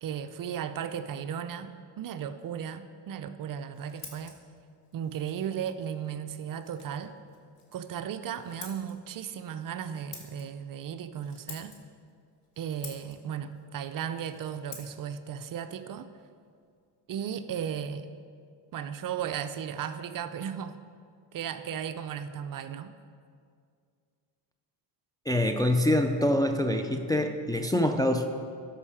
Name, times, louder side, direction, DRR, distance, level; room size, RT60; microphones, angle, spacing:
voice 1, 0.0-4.3 4.9-7.2 7.7-11.7 12.6-16.1 17.1-18.2 18.7-20.8 21.3-22.9, right 8 dB, 45° right, 10 dB, 0.5 m, -35 dB
Scissors, 3.4-17.0, left 4 dB, 45° left, 2.0 m, -52 dB
voice 2, 25.3-28.3, left 1 dB, 10° left, 4 dB, 0.4 m, -25 dB
12.5 x 5.6 x 4.9 m, 2.2 s
supercardioid pair, 80°, 49 cm